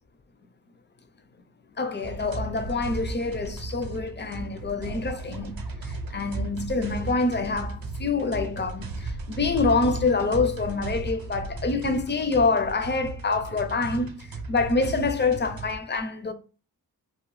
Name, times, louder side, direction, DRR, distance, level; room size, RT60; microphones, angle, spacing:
voice 1, 1.8-5.6 5.8-14.1 14.5-16.3, left 4 dB, 30° left, 0.4 m, -26 dB
sound 1, 2.0-15.8, right 3 dB, 65° right, 0.6 m, -35 dB
2.9 x 2.1 x 3.1 m
cardioid pair, 50°, 38 cm